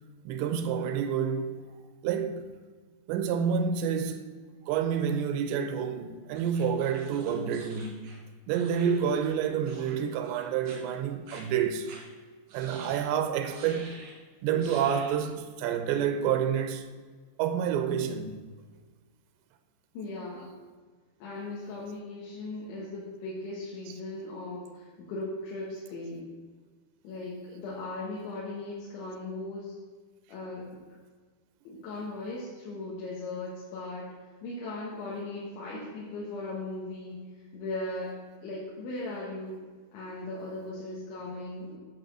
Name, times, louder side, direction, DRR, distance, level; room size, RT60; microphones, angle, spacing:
voice 1, 0.3-1.6 2.0-2.5 3.1-4.3 4.7-8.0 8.5-11.9 12.5-14.0 14.4-16.9 17.4-18.4 23.9-24.0, right 7 dB, 80° right, 2.9 m, -29 dB
sound 1, 6.3-9.4 9.6-10.0 10.2-10.8 11.3-11.4 11.9-12.0 12.5-13.1 13.5-14.2 14.6-15.2, right 3 dB, 60° right, 3.6 m, -49 dB
voice 2, 19.9-20.6 21.2-26.3 27.0-29.7 30.3-30.7 31.7-34.1 34.4-39.6 39.9-41.8, left 2 dB, 80° left, 3.9 m, -38 dB
8.7 x 5.4 x 7.4 m
omnidirectional pair, 5.3 m